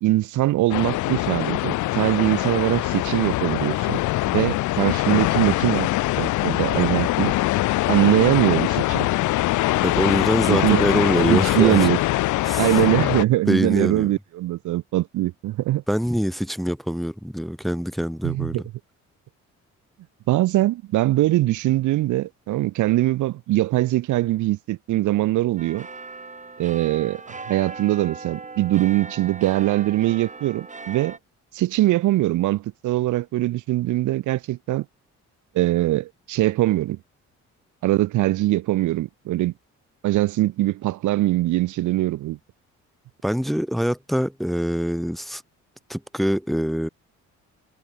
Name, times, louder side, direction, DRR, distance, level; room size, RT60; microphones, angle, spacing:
voice 1, 0.0-4.0 4.3-5.9 6.2-7.3 7.9-9.1 10.5-10.8 11.2-12.0 12.6-15.8 18.2-18.6 20.3-25.9 26.6-27.2 27.5-31.2 31.5-34.8 35.5-37.0 37.8-39.5 40.0-42.4, right 16 dB, 75° right, 0.7 m, -22 dB
sound 1, 0.7-13.2, left 18 dB, 75° left, 0.5 m, -23 dB
voice 2, 9.8-11.9 12.5-12.8 13.5-14.1 15.9-18.6 43.2-45.4 45.9-46.9, equal, ahead, 1.0 m, -24 dB
sound 2, 25.6-31.2, right 3 dB, 25° right, 4.4 m, -38 dB
cardioid pair, 90°, 30 cm